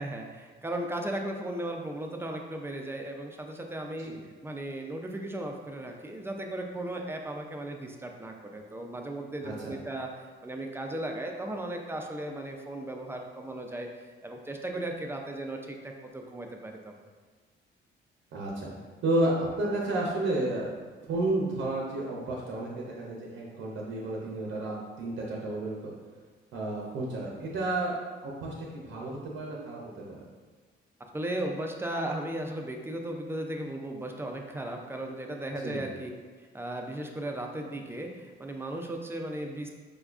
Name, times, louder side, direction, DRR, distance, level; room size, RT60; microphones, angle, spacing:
voice 1, 0.0-4.1 4.4-10.1 10.4-13.9 14.2-16.9 31.1-36.1 36.5-39.7, right 1 dB, 10° right, 2 dB, 0.4 m, -36 dB
voice 2, 9.4-9.8 18.3-18.7 19.0-20.7 21.1-25.9 26.5-27.9 28.2-30.2 35.6-35.8, right 2 dB, 75° right, -3 dB, 0.6 m, -31 dB
4.9 x 2.2 x 2.4 m, 1.4 s
cardioid pair, 90°, 20 cm